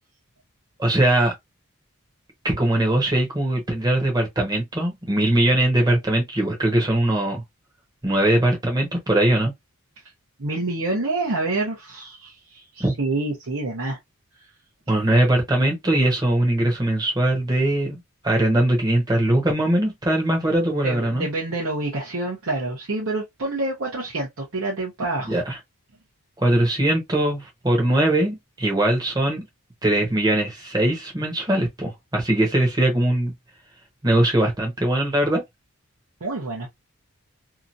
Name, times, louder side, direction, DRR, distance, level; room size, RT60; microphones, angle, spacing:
voice 1, 0.8-1.3 2.4-7.4 8.0-9.5 12.8-12.9 14.9-18.0 18.2-21.3 25.3-25.6 26.4-29.4 29.8-33.3 34.0-35.4, right 1 dB, 20° right, 1.0 m, -21 dB
voice 2, 10.4-14.0 20.8-25.4 36.2-36.7, right 2 dB, 65° right, 0.9 m, -27 dB
2.9 x 2.5 x 2.5 m
head